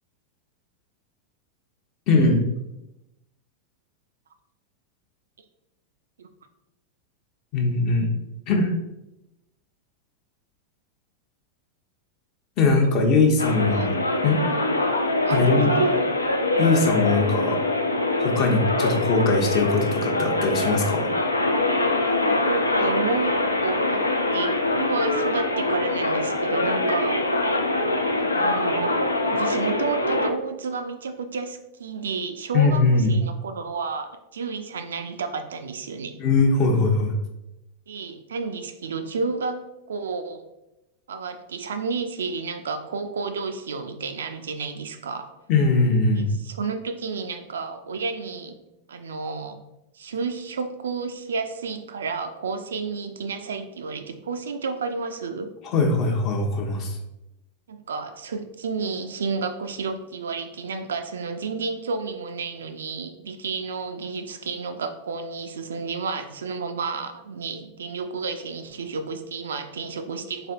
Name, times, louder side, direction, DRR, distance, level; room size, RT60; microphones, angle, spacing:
voice 1, 2.1-2.4 7.5-8.1 8.5-8.7 12.6-13.9 14.2-14.4 15.3-15.7 16.6-17.6 18.2-21.1 32.5-33.2 36.2-37.2 45.5-46.3 55.6-57.0, left 3 dB, 40° left, 2 dB, 0.7 m, -21 dB
sound 1, 13.4-30.3, left 2 dB, 80° left, 0.3 m, -24 dB
voice 2, 13.6-13.9 14.5-14.7 15.3-16.1 18.4-18.6 22.1-24.1 24.3-27.2 28.2-29.0 29.3-36.2 37.9-40.4 41.1-45.3 46.1-48.6 48.9-49.6 49.9-55.5 57.7-70.5, right 4 dB, 65° right, 7 dB, 0.3 m, -31 dB
3.8 x 3.3 x 2.5 m, 0.91 s
figure-of-eight pair, 90°, 0 cm